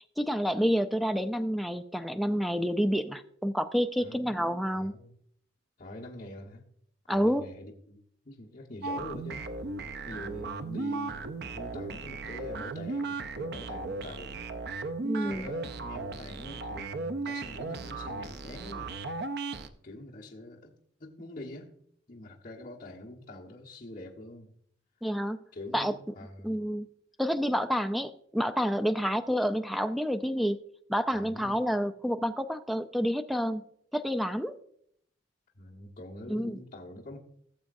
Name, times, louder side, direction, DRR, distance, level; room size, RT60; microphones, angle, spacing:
voice 1, 0.0-4.9 7.1-7.4 15.0-15.5 25.0-25.4 25.7-25.9 26.4-26.9 27.2-30.6 30.9-33.6 33.9-34.6 36.3-36.6, equal, ahead, 7 dB, 0.4 m, -29 dB
voice 2, 4.0-4.4 4.7-5.2 5.8-6.6 7.1-9.5 10.0-14.4 15.2-18.9 19.8-20.7 21.0-21.7 22.1-24.6 25.5-26.6 31.1-31.6 35.5-37.2, left 1 dB, 45° left, -4 dB, 1.4 m, -45 dB
sound 1, 8.8-19.7, right 3 dB, 60° right, 0.6 m, -36 dB
17.5 x 7.3 x 2.6 m, 0.68 s
head